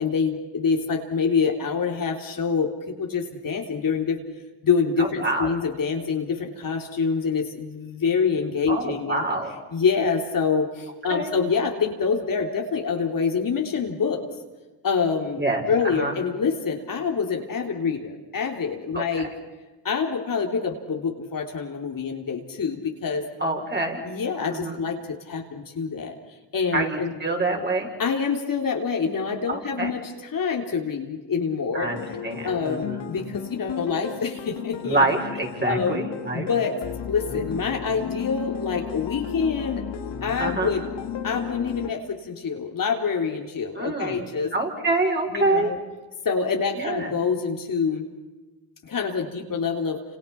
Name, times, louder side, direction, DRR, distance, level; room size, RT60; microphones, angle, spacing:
voice 1, 0.0-4.2 4.6-9.2 9.7-14.2 14.8-15.4 15.7-19.3 19.8-23.2 24.0-26.2 26.5-27.1 28.0-32.2 32.4-35.1 35.7-36.0 36.3-36.8 37.1-39.8 40.2-40.8 41.2-44.5 45.3-45.8 46.3-48.1 48.8-50.0, left 5 dB, 45° left, 2 dB, 3.5 m, -26 dB
voice 2, 5.0-5.5 8.7-9.5 11.1-11.3 15.4-15.6 15.9-16.1 18.9-19.0 23.4-24.0 24.5-24.8 26.7-27.9 29.5-29.9 31.7-33.0 34.8-36.5 37.3-37.4 40.4-40.7 43.7-44.2 44.5-45.7 46.8-47.1, right 2 dB, 20° right, 1 dB, 6.6 m, -26 dB
sound 1, 31.8-41.9, left 8 dB, 60° left, 2.6 m, -34 dB
29.5 x 27.5 x 6.0 m, 1.2 s
supercardioid pair, 75°, 46 cm